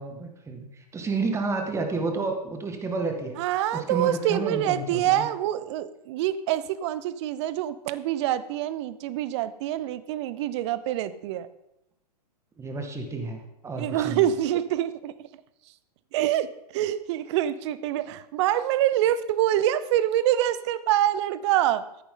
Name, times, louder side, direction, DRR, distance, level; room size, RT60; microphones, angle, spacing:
voice 1, 0.0-3.4 3.7-5.3 12.6-14.3, right 3 dB, 15° right, 5 dB, 2.0 m, -30 dB
voice 2, 3.4-11.5 13.8-15.3 16.1-21.8, right 12 dB, 45° right, 15 dB, 0.8 m, -26 dB
14.5 x 10.0 x 3.9 m, 0.83 s
figure-of-eight pair, 110°, 21 cm